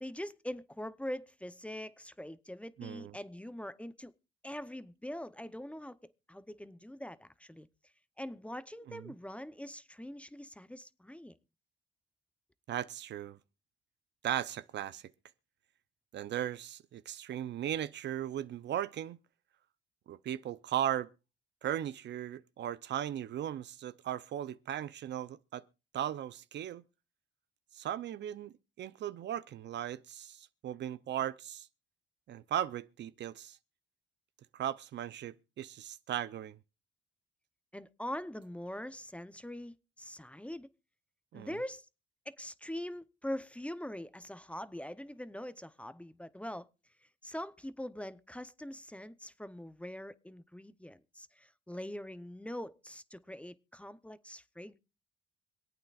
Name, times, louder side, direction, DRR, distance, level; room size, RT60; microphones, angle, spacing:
voice 1, 0.0-4.1 4.4-7.7 8.2-11.4 37.7-40.7 41.3-41.9 42.3-46.7 47.2-54.8, left 1 dB, 5° left, 0.7 m, -43 dB
voice 2, 2.8-3.2 8.9-9.1 12.7-13.4 14.2-15.1 16.1-19.2 20.1-21.1 21.6-25.6 25.9-26.8 27.7-31.7 32.3-33.6 34.5-36.6 41.3-41.6, right 11 dB, 65° right, 0.6 m, -37 dB
26.0 x 8.9 x 2.4 m
cardioid pair, 90°, 20 cm